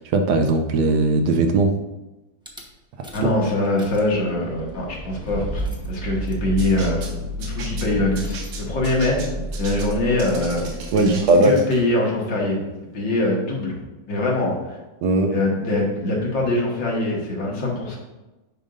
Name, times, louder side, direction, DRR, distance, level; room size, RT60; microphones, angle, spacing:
voice 1, 0.0-1.8 3.0-3.3 10.9-11.6 15.0-15.4, right 2 dB, 70° right, 5 dB, 1.1 m, -19 dB
Rattle / Car / Engine starting, 2.5-2.6 3.0-3.4 3.6-11.4, equal, 5° right, 0.5 m, -31 dB
voice 2, 3.1-7.1 7.4-12.6 12.9-13.7 14.1-14.8 15.3-18.0, left 1 dB, 80° left, -3 dB, 2.4 m, -23 dB
sound 1, 6.6-11.9, right 5 dB, 90° right, 1.7 m, -38 dB
10.0 x 5.3 x 2.6 m, 1.1 s
omnidirectional pair, 2.0 m